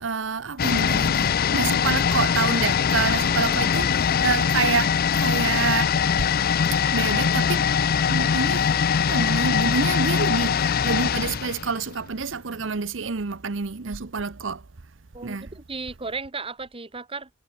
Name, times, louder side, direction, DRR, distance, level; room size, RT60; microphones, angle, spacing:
voice 1, 0.0-6.3 6.9-7.7 8.1-14.6 15.2-15.5, right 5 dB, 70° right, 0.9 m, -28 dB
sound 1, 0.6-12.3 12.6-12.7, left 7 dB, 50° left, 0.5 m, -22 dB
voice 2, 15.1-17.3, right 4 dB, 30° right, 1.8 m, -35 dB
head